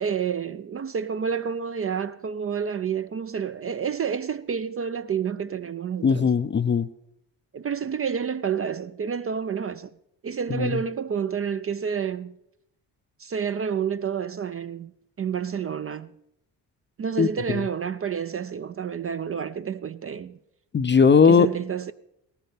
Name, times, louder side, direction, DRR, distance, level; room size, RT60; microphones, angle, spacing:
voice 1, 0.0-6.3 7.5-9.9 10.2-12.4 13.2-14.9 15.2-16.1 17.0-20.4 21.3-21.9, right 7 dB, 30° right, 0.4 m, -29 dB
voice 2, 6.0-6.9 10.5-10.8 17.2-17.7 20.7-21.5, left 6 dB, 25° left, 0.5 m, -19 dB
17.5 x 14.5 x 3.4 m
supercardioid pair, 60°, 47 cm